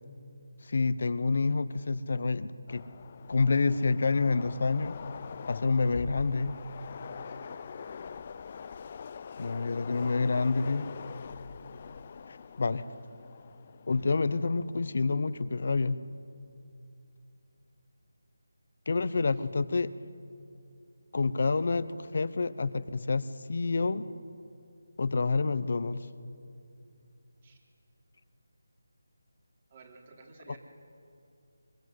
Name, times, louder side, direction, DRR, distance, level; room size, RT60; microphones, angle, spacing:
voice 1, 0.6-2.8 3.3-5.0 5.5-6.6 9.4-10.9 12.3-12.8 13.9-16.0 18.9-19.9 21.1-24.1 25.0-26.1, left 4 dB, 50° left, 14 dB, 1.1 m, -28 dB
Train, 2.7-14.9, left 6 dB, 30° left, 0.6 m, -44 dB
voice 2, 7.2-7.9 19.3-19.5 27.4-27.6 29.7-30.6, right 4 dB, 30° right, 1 dB, 3.9 m, -55 dB
25.0 x 23.0 x 8.0 m, 2.6 s
figure-of-eight pair, 170°, 0 cm